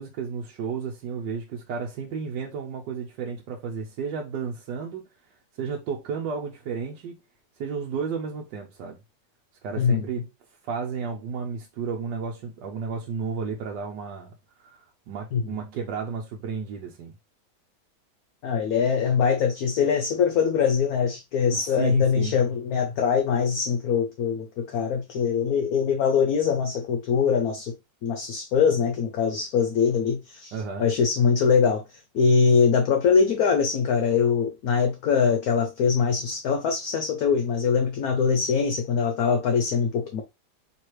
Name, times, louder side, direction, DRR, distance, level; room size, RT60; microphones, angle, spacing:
voice 1, 0.0-5.1 5.5-7.2 7.6-9.0 9.6-10.3 10.6-14.3 14.6-17.1 21.5-22.4 30.5-30.9, right 5 dB, 75° right, 1.3 m, -32 dB
voice 2, 9.8-10.1 15.3-15.4 18.4-27.7 28.0-30.5 30.8-31.8 32.1-40.2, left 6 dB, 65° left, 1.0 m, -23 dB
4.6 x 3.3 x 3.1 m
omnidirectional pair, 1.9 m